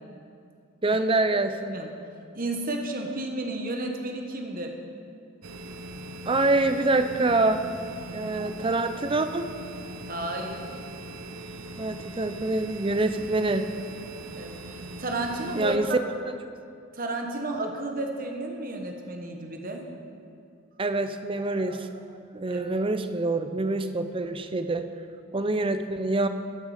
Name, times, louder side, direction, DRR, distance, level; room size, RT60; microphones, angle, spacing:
voice 1, 0.8-1.8 6.3-7.6 8.1-9.5 11.8-13.7 15.6-15.9 16.2-16.3 20.8-21.9 22.3-24.9 25.3-26.3, right 2 dB, 25° right, 9 dB, 0.5 m, -25 dB
voice 2, 2.3-4.7 10.1-10.7 14.4-16.0 16.9-19.9 22.5-22.6, right 2 dB, 40° right, 3 dB, 1.3 m, -32 dB
sound 1, 5.4-15.8, right 1 dB, 80° right, 0.8 m, -40 dB
14.5 x 9.5 x 5.0 m, 2.4 s
head